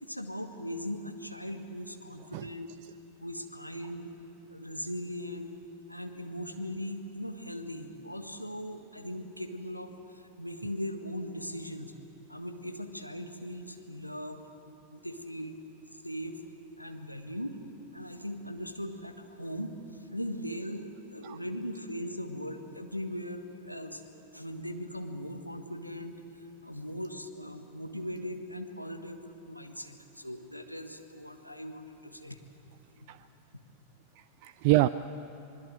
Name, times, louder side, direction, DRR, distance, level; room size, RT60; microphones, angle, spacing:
voice 1, 0.0-2.7 3.2-4.1 4.5-5.5 5.9-11.9 12.3-14.4 14.9-15.5 16.0-16.4 16.8-17.6 17.9-24.0 24.3-26.2 26.6-32.4, equal, 90° left, 5 dB, 1.5 m, -39 dB
voice 2, 34.2-34.9, right 18 dB, 45° right, 14 dB, 0.4 m, -26 dB
26.0 x 20.5 x 7.7 m, 3.0 s
figure-of-eight pair, 90°, 0 cm